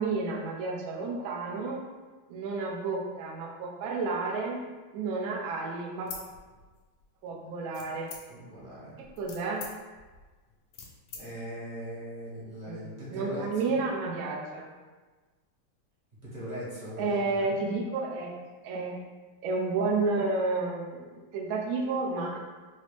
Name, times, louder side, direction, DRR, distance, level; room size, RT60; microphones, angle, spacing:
voice 1, 0.0-1.8 2.3-4.6 4.9-6.1 7.2-8.1 9.0-9.7 12.7-14.7 17.0-19.0 19.4-22.4, right 3 dB, 85° right, -2 dB, 0.7 m, -31 dB
sound 1, 6.0-7.0 7.7-8.5 9.0-11.2, left 5 dB, 90° left, 1.5 m, -44 dB
voice 2, 8.3-9.0 11.1-13.8 16.2-17.5, equal, 40° right, -9 dB, 0.7 m, -40 dB
4.2 x 2.0 x 3.1 m, 1.3 s
omnidirectional pair, 2.2 m